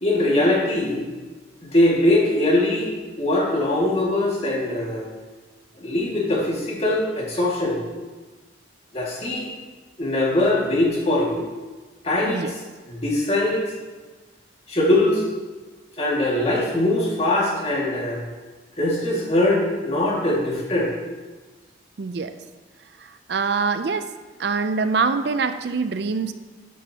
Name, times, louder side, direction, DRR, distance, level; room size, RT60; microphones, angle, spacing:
voice 1, 0.0-1.1 1.6-2.9 3.1-5.1 5.8-7.8 8.9-9.5 10.0-11.4 12.0-12.5 12.9-13.7 14.7-15.2 16.0-18.2 18.8-20.9, left 1 dB, 35° left, -3 dB, 2.0 m, -21 dB
voice 2, 22.0-22.3 23.0-24.1 24.4-26.3, right 4 dB, 60° right, 10 dB, 0.4 m, -24 dB
12.5 x 9.3 x 2.9 m, 1.3 s
head